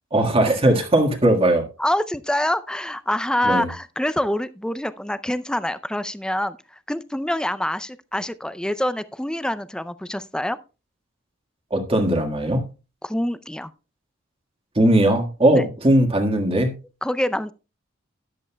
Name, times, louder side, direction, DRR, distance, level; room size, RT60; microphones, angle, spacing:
voice 1, 0.1-1.7 3.4-3.7 11.7-12.7 14.7-16.7, right 1 dB, 30° right, 1.6 m, -19 dB
voice 2, 1.8-6.6 6.9-10.6 13.0-13.7 15.5-15.7 17.0-17.5, left 1 dB, 5° left, 0.4 m, -25 dB
13.0 x 11.0 x 2.2 m
head